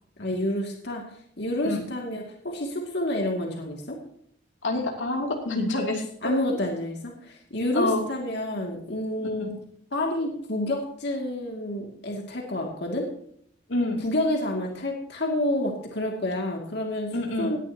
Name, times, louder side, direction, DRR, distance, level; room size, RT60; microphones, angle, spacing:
voice 1, 0.2-1.0 1.4-4.0 6.2-9.5 9.9-13.0 14.0-17.6, left 1 dB, 60° left, 1 dB, 2.4 m, -29 dB
voice 2, 4.6-6.3 7.7-8.0 9.4-9.6 13.7-14.0 17.1-17.5, left 2 dB, 90° left, 1 dB, 2.8 m, -27 dB
18.5 x 11.0 x 2.9 m, 0.65 s
head